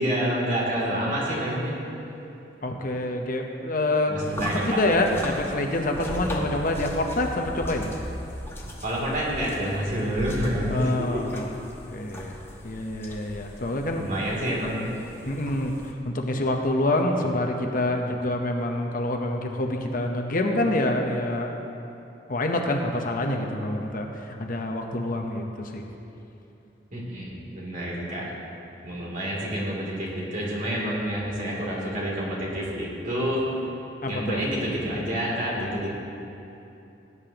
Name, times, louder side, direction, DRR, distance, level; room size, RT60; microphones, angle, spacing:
voice 1, 0.0-1.7 4.1-4.9 6.1-6.4 8.8-11.2 13.9-14.9 26.9-28.3 28.8-33.4 34.1-35.9, equal, 50° right, -5 dB, 2.9 m, -28 dB
voice 2, 2.6-7.9 10.7-11.5 11.9-12.4 12.6-14.0 15.3-15.7 16.0-21.5 22.3-25.8 34.0-34.4, left 1 dB, 50° left, 3 dB, 0.9 m, -26 dB
sound 1, 4.2-15.9, equal, 15° left, 1.2 m, -38 dB
18.0 x 9.6 x 3.0 m, 2.9 s
head